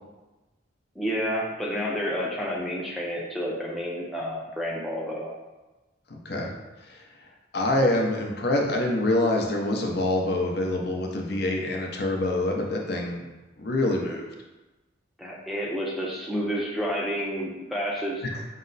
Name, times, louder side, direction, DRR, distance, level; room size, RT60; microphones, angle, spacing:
voice 1, 1.0-5.3 15.2-18.2, equal, ahead, -3 dB, 0.4 m, -30 dB
voice 2, 6.1-6.5 6.9-7.0 7.5-13.2 13.6-14.3 18.2-18.4, left 1 dB, 55° left, 0 dB, 0.6 m, -25 dB
5.4 x 2.1 x 3.9 m, 1.1 s
head